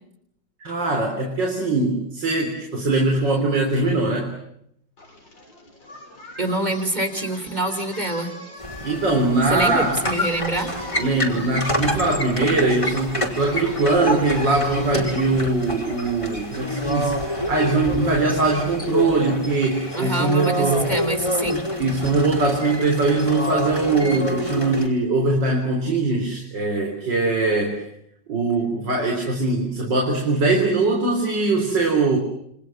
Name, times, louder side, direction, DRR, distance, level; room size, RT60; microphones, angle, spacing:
voice 1, 0.6-4.4 8.8-10.0 11.0-21.0 21.8-27.9 28.3-32.2, right 3 dB, 75° right, 2 dB, 4.5 m, -21 dB
Singing, 5.0-14.9, left 1 dB, 85° left, 7.3 m, -42 dB
voice 2, 6.4-8.3 9.5-10.7 19.9-21.6, right 1 dB, 20° right, 8 dB, 3.7 m, -25 dB
sound 1, 8.6-24.9, left 1 dB, 15° left, 4.8 m, -28 dB
29.0 x 26.5 x 7.8 m, 0.75 s
omnidirectional pair, 2.0 m